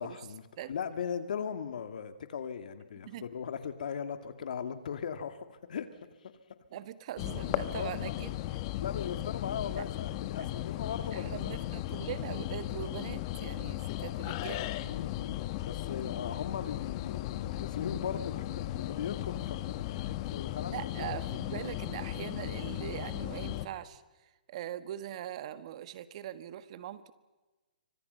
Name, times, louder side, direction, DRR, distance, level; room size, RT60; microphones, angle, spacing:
voice 1, 0.0-0.4 0.7-5.9 6.2-6.3 7.7-8.1 8.8-11.6 13.9-14.1 14.8-21.1, left 7 dB, 65° left, 9 dB, 2.5 m, -39 dB
voice 2, 6.7-8.3 9.8-9.9 10.4-10.5 11.1-14.7 20.7-27.1, right 11 dB, 45° right, 13 dB, 1.6 m, -41 dB
sound 1, 7.2-23.7, left 14 dB, 35° left, 1.3 m, -36 dB
27.5 x 25.0 x 5.7 m, 1.2 s
hypercardioid pair, 145°, 5 cm